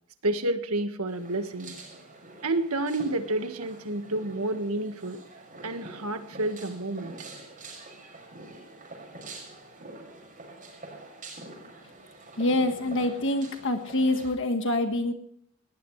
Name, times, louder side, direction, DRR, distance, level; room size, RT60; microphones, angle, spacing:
voice 1, 0.2-1.7 2.4-5.2 5.6-7.1, right 2 dB, 90° right, 8 dB, 1.7 m, -29 dB
sound 1, 1.1-14.3, right 2 dB, 40° right, 6.1 m, -46 dB
voice 2, 12.4-15.1, left 2 dB, 60° left, 6 dB, 1.6 m, -26 dB
19.5 x 18.5 x 3.3 m, 0.66 s
head